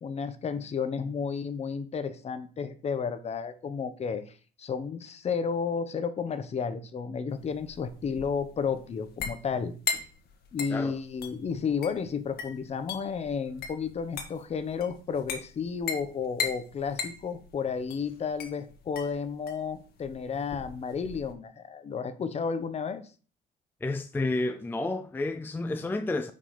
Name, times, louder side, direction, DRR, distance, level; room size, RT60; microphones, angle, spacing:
voice 1, 0.0-9.7 10.5-23.1, left 6 dB, 40° left, 1.0 m, -32 dB
sound 1, 7.4-21.3, left 6 dB, 65° left, 1.6 m, -38 dB
voice 2, 23.8-26.3, left 2 dB, 10° left, 0.5 m, -30 dB
5.3 x 5.0 x 5.7 m
cardioid pair, 110°, 17 cm